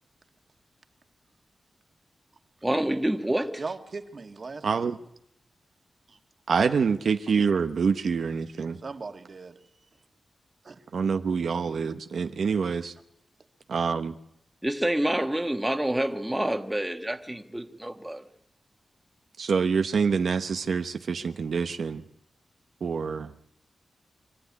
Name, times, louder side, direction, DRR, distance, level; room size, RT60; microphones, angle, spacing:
voice 1, 2.6-3.6 14.6-18.2, right 1 dB, 10° right, 1.5 m, -27 dB
voice 2, 3.6-5.0 6.1-6.2 8.8-9.6 10.6-10.8, right 4 dB, 50° right, 2.0 m, -39 dB
voice 3, 4.6-5.0 6.5-8.8 10.9-12.9 13.7-14.1 19.4-22.0 22.8-23.3, right 5 dB, 75° right, 1.0 m, -26 dB
24.5 x 14.0 x 9.7 m
wide cardioid pair, 95°, 0 cm